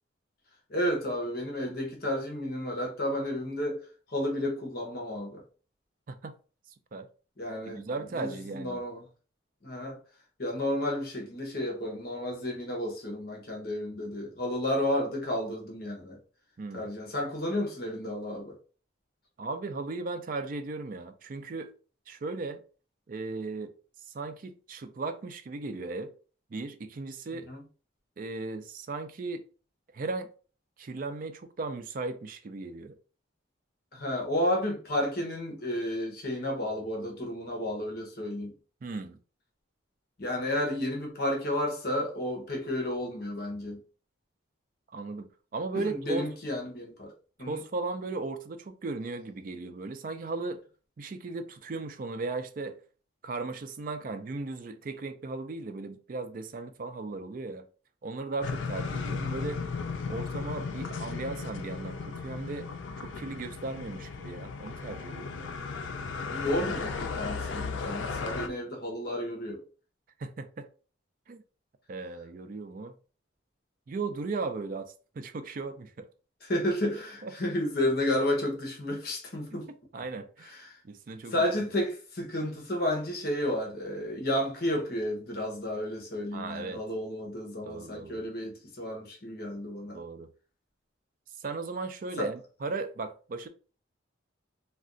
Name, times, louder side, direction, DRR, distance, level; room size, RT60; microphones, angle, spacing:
voice 1, 0.7-3.8 4.1-5.4 7.4-7.8 8.2-9.0 9.6-10.0 10.4-16.2 16.7-18.6 27.3-27.6 33.9-38.5 40.2-43.8 45.7-47.1 47.4-47.6 66.3-69.6 76.4-79.7 80.4-80.8 81.3-90.0 92.2-92.3, left 1 dB, 50° left, 0.8 m, -32 dB
voice 2, 7.7-8.8 16.6-16.9 19.4-21.7 22.1-22.6 23.1-23.7 24.1-26.1 26.5-27.5 28.2-29.4 29.9-30.3 30.8-32.9 38.8-39.2 44.9-46.2 47.5-50.6 51.0-52.8 53.2-57.7 58.0-59.6 60.1-62.7 63.0-65.5 70.2-70.7 71.3-71.4 71.9-72.9 73.9-76.1 77.2-77.3 79.9-80.5 80.8-81.7 86.3-86.8 87.6-88.2 89.9-90.3 91.4-93.5, right 3 dB, 45° right, 0.3 m, -36 dB
sound 1, 58.4-68.5, left 5 dB, 75° left, 0.4 m, -35 dB
2.5 x 2.2 x 3.7 m
head